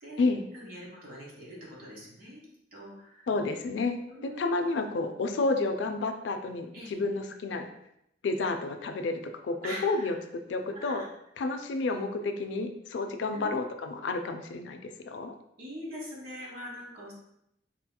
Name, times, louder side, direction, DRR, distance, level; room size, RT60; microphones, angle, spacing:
voice 1, 0.5-2.4 2.7-3.3 4.1-4.8 6.7-6.9 9.6-10.2 10.6-11.1 11.9-12.0 13.3-13.6 15.6-17.1, equal, 55° right, -3 dB, 1.2 m, -43 dB
voice 2, 3.3-7.7 8.2-11.0 11.4-15.3, left 3 dB, 75° left, 7 dB, 0.4 m, -30 dB
4.1 x 2.8 x 2.2 m, 0.79 s
head